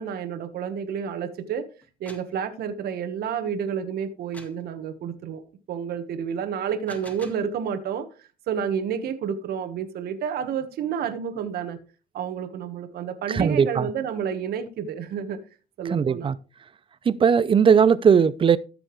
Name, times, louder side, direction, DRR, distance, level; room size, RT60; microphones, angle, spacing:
voice 1, 0.0-1.7 2.0-5.4 5.7-8.1 8.5-11.8 12.1-15.4 15.8-16.3, right 7 dB, 65° right, 1.4 m, -30 dB
sound 1, 1.8-2.4 4.3-4.7 6.6-7.5, left 1 dB, 10° left, 1.9 m, -46 dB
voice 2, 13.3-13.9 15.8-16.4 17.0-18.6, right 7 dB, 30° right, 0.6 m, -19 dB
14.0 x 6.9 x 3.2 m
cardioid pair, 110°, 17 cm